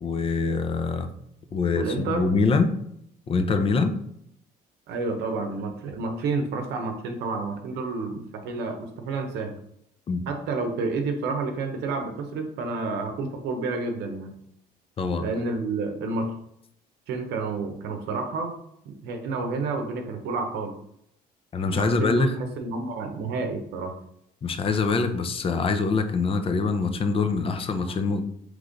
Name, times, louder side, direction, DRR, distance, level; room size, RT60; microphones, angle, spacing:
voice 1, 0.0-1.1 1.5-2.7 3.3-3.9 10.1-10.2 15.0-15.3 21.5-22.3 24.4-28.3, left 4 dB, 35° left, 7 dB, 0.5 m, -24 dB
voice 2, 1.7-2.3 4.9-9.6 10.3-14.3 15.2-16.3 17.1-18.6 18.8-20.7 21.7-23.9, right 3 dB, 80° right, 5 dB, 0.7 m, -30 dB
3.6 x 3.2 x 3.8 m, 0.73 s
cardioid pair, 110°, 17 cm